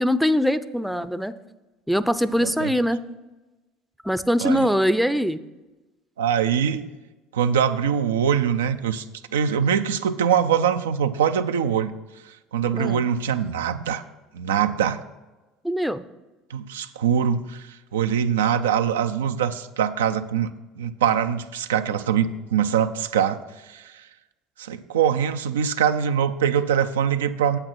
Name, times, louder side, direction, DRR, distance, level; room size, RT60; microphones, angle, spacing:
voice 1, 0.0-1.3 1.9-3.0 4.0-5.4 12.7-13.0 15.6-16.0, equal, ahead, 13 dB, 0.5 m, -22 dB
voice 2, 2.4-2.7 4.4-4.6 6.2-6.9 7.3-9.0 9.3-12.0 12.5-14.0 14.3-15.0 16.5-20.5 20.8-24.0 24.6-27.6, right 8 dB, 90° right, 9 dB, 0.5 m, -23 dB
8.8 x 7.9 x 4.4 m, 1.1 s
hypercardioid pair, 80°, 0 cm